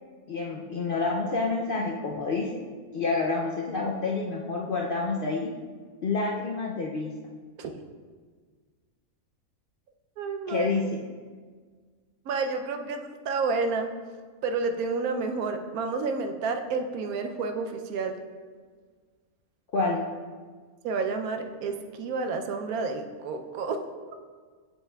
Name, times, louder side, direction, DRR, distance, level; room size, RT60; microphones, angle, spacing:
voice 1, 0.3-2.5 2.9-5.5 6.0-7.1 10.5-10.8 19.7-20.0, left 3 dB, 60° left, -2 dB, 0.5 m, -28 dB
voice 2, 10.2-10.7 12.3-13.9 14.4-18.2 20.8-23.8, right 4 dB, 85° right, 5 dB, 1.1 m, -30 dB
7.2 x 7.0 x 2.3 m, 1.5 s
omnidirectional pair, 1.5 m